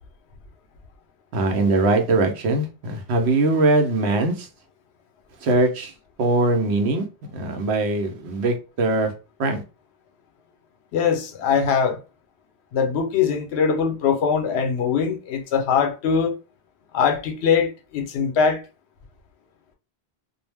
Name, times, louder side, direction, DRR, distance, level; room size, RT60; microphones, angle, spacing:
voice 1, 1.3-4.5 5.4-5.9 6.2-9.1 9.4-9.6, right 2 dB, 85° right, 0.9 m, -21 dB
voice 2, 10.9-12.0 12.7-16.3 16.9-18.6, left 6 dB, 80° left, 0.9 m, -22 dB
2.3 x 2.0 x 3.3 m
omnidirectional pair, 1.1 m